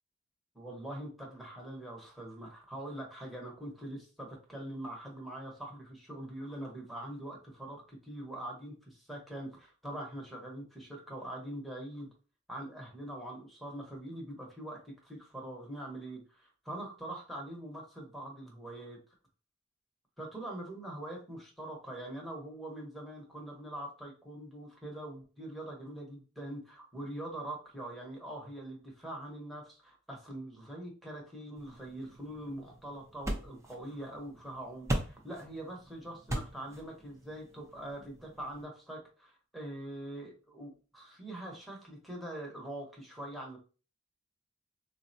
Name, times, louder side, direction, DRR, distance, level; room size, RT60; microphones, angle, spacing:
voice 1, 0.5-12.1 12.5-19.0 20.2-43.6, right 1 dB, ahead, -1 dB, 0.8 m, -43 dB
sound 1, 31.6-38.6, right 1 dB, 15° right, 0.5 m, -41 dB
3.6 x 2.1 x 2.6 m, 0.35 s
head